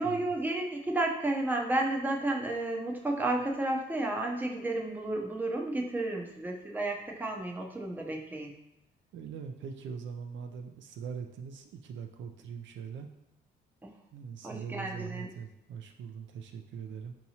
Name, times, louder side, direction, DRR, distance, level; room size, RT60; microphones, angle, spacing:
voice 1, 0.0-8.5 13.8-13.9 14.4-15.3, right 2 dB, 10° right, 1 dB, 0.6 m, -32 dB
voice 2, 9.1-13.1 14.1-17.1, right 6 dB, 70° right, 5 dB, 0.4 m, -42 dB
4.6 x 2.8 x 2.7 m, 0.85 s
cardioid pair, 90°, 20 cm